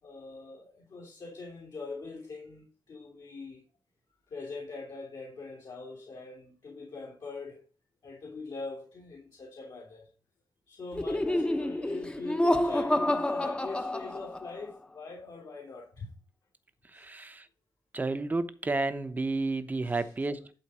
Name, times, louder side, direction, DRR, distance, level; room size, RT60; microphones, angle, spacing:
voice 1, 0.0-3.6 4.2-7.7 8.0-10.1 10.7-16.1 16.9-17.1 19.8-20.1, left 3 dB, 60° left, 3.0 m, -42 dB
Laughter, 10.9-14.6, left 1 dB, 15° left, 1.0 m, -28 dB
voice 2, 16.9-17.5 17.9-20.5, right 3 dB, 25° right, 0.9 m, -31 dB
11.5 x 4.0 x 6.1 m
wide cardioid pair, 120°, 8 cm